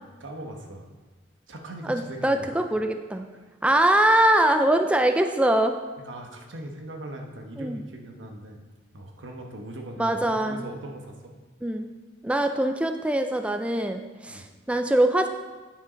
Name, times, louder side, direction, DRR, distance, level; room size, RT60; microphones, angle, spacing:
voice 1, 0.2-0.9 1.5-2.5 6.0-8.6 8.9-11.3 14.3-14.5, right 1 dB, 90° right, 3 dB, 1.1 m, -40 dB
voice 2, 1.9-3.3 3.6-5.8 7.6-7.8 10.0-10.7 11.6-11.9 12.2-15.3, right 1 dB, 5° right, 6 dB, 0.3 m, -23 dB
9.2 x 4.9 x 5.1 m, 1.3 s
head